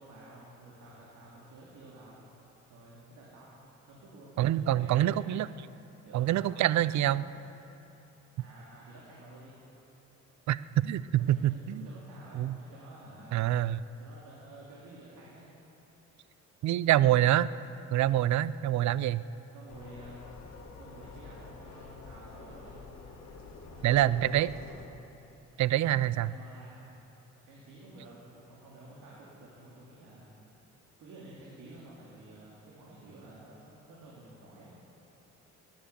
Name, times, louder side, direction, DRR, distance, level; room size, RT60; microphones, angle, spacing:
voice 1, 0.0-2.2 2.7-3.6 3.9-5.4 6.0-6.6 7.1-7.3 8.4-9.6 11.2-13.4 14.0-15.6 19.5-20.2 20.8-23.0 23.7-25.0 26.2-26.9 27.4-30.3 31.0-34.7, right 1 dB, 85° right, -5 dB, 2.9 m, -51 dB
voice 2, 4.4-5.5 6.1-7.2 10.5-11.9 12.4-12.6 13.3-13.8 16.6-17.5 17.9-19.2 23.8-24.5 25.6-26.3, right 13 dB, 65° right, 17 dB, 0.5 m, -26 dB
sound 1, 19.7-24.9, left 4 dB, 60° left, 2.1 m, -48 dB
19.5 x 10.5 x 6.9 m, 3.0 s
cardioid pair, 90°, 30 cm